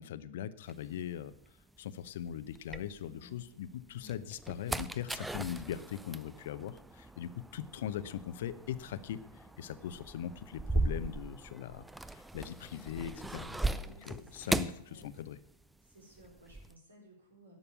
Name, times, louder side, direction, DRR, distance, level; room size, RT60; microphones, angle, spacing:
voice 1, 0.0-1.3 1.8-13.5 14.0-15.4, left 10 dB, 60° left, 15 dB, 0.7 m, -40 dB
sound 1, 0.7-3.5 3.9-15.7 15.9-16.7, right 2 dB, 5° right, 0.5 m, -38 dB
voice 2, 3.0-3.5 3.9-4.2 13.2-14.5 14.8-15.1 15.8-17.6, equal, 80° right, 0 dB, 4.0 m, -56 dB
11.0 x 6.8 x 8.5 m, 0.71 s
figure-of-eight pair, 95°, 0 cm